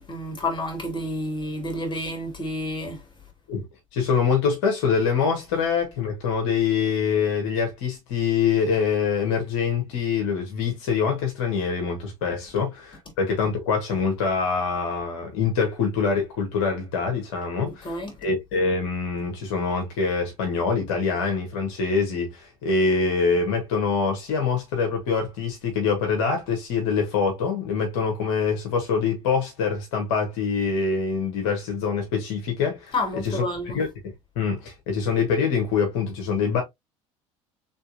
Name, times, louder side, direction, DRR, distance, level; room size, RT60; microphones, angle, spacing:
voice 1, 0.1-3.0 17.6-18.1 32.9-33.8, left 1 dB, 25° left, 2.6 m, -29 dB
voice 2, 3.9-33.4 33.7-33.9 34.3-36.6, left 5 dB, 65° left, 1.6 m, -25 dB
4.3 x 3.6 x 2.8 m
hypercardioid pair, 70°, 17 cm